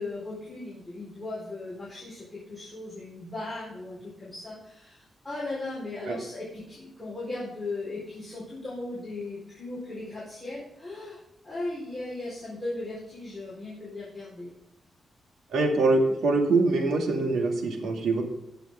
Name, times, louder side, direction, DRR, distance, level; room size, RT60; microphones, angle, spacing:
voice 1, 0.0-14.5, left 2 dB, 10° left, -9 dB, 4.5 m, -37 dB
voice 2, 15.5-18.2, right 3 dB, 85° right, 2 dB, 2.5 m, -24 dB
19.5 x 7.1 x 3.8 m, 0.87 s
wide cardioid pair, 155°, 0 cm